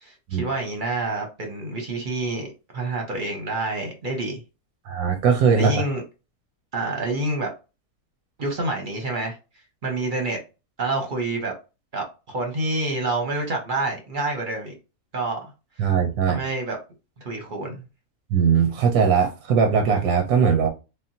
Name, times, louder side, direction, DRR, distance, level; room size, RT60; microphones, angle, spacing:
voice 1, 0.0-4.4 5.5-6.0 6.7-7.5 8.4-9.4 9.8-10.4 10.8-11.5 11.9-14.7 15.1-15.5 16.3-16.8 17.2-17.8, right 2 dB, 45° right, 0.7 m, -28 dB
voice 2, 4.8-5.8 15.8-16.4 18.3-20.7, right 6 dB, 85° right, 1.2 m, -20 dB
3.6 x 2.2 x 2.6 m
omnidirectional pair, 1.6 m